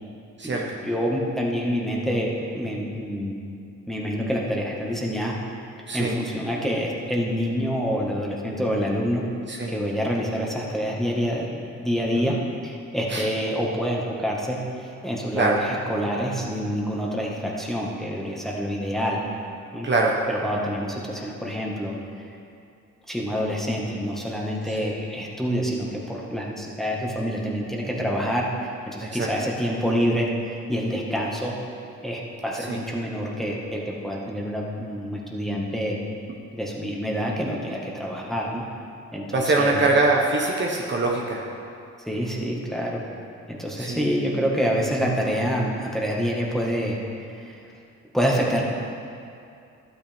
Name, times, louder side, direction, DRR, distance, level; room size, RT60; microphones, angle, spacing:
voice 1, 0.8-3.4 3.9-5.3 5.9-9.2 9.7-12.3 12.6-19.2 19.7-19.9 20.3-21.9 23.1-28.5 28.9-31.5 32.0-36.0 36.5-38.6 39.1-39.8 42.1-43.0 43.5-47.0 47.3-47.6 48.1-48.6, equal, ahead, -3 dB, 1.6 m, -27 dB
voice 2, 19.8-20.2 24.7-25.0 29.0-29.3 32.7-32.8 39.3-41.4 43.8-44.1, right 2 dB, 35° right, -2 dB, 1.1 m, -23 dB
12.0 x 8.8 x 3.6 m, 2.5 s
cardioid pair, 90°, 30 cm